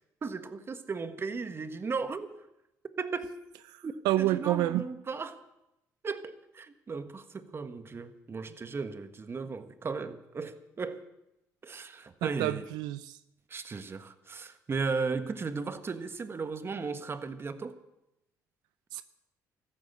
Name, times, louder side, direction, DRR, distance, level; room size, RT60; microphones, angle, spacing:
voice 1, 0.2-2.3 3.0-3.3 3.8-5.4 6.0-11.0 11.6-12.7 13.5-17.8, right 4 dB, 35° right, 1.4 m, -36 dB
voice 2, 3.7-4.8 12.2-13.2 18.9-19.0, right 15 dB, 85° right, 0.5 m, -29 dB
14.0 x 12.5 x 8.0 m
cardioid pair, 85°, 7 cm